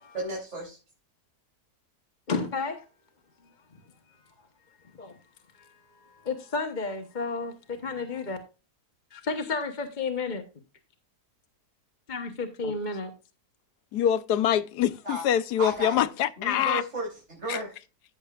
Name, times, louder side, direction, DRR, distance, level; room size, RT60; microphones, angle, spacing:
voice 1, 0.1-0.8 15.0-15.2 15.6-16.1 16.4-17.7, right 1 dB, 45° right, 4.1 m, -33 dB
voice 2, 2.3-2.8 5.0-5.1 5.6-8.4 9.1-10.4 12.1-13.1, left 4 dB, 30° left, 1.1 m, -32 dB
voice 3, 13.9-16.8 17.5-17.6, left 10 dB, 90° left, 1.3 m, -25 dB
14.0 x 7.1 x 2.4 m
omnidirectional pair, 1.7 m